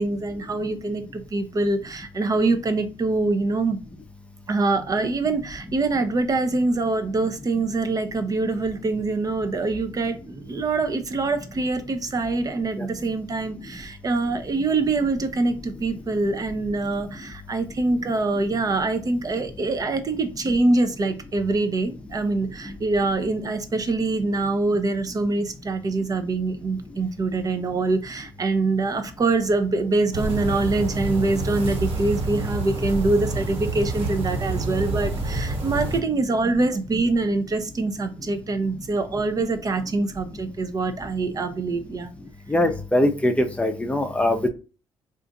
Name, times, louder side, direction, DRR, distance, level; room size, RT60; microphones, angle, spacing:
voice 1, 0.0-3.8 4.5-42.1, right 3 dB, 35° right, 0.6 m, -24 dB
sound 1, 30.1-36.0, right 2 dB, 65° right, 1.3 m, -28 dB
voice 2, 42.5-44.5, left 1 dB, 10° left, 0.6 m, -22 dB
2.5 x 2.4 x 3.9 m
supercardioid pair, 70°, 10 cm